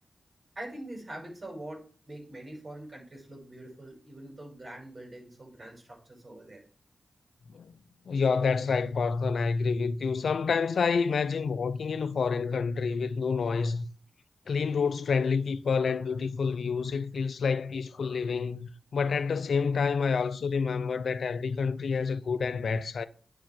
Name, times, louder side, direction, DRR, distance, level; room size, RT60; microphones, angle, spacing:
voice 1, 0.6-6.6, right 1 dB, 45° right, 5.9 m, -44 dB
voice 2, 8.1-13.9 14.5-23.1, left 5 dB, 80° left, 0.6 m, -28 dB
9.2 x 4.9 x 7.6 m
cardioid pair, 50°, 0 cm